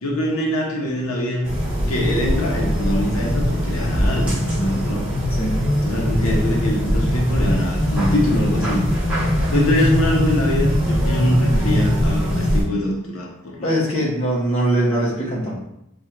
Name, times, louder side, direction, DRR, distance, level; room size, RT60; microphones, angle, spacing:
voice 1, 0.0-1.5 1.8-5.0 5.8-8.9 9.5-13.7, left 1 dB, 85° left, -1 dB, 0.8 m, -23 dB
sound 1, 1.4-12.6, equal, 5° right, 1.2 m, -21 dB
voice 2, 13.6-15.6, right 1 dB, 30° left, -6 dB, 1.1 m, -21 dB
3.7 x 2.5 x 4.4 m, 0.83 s
head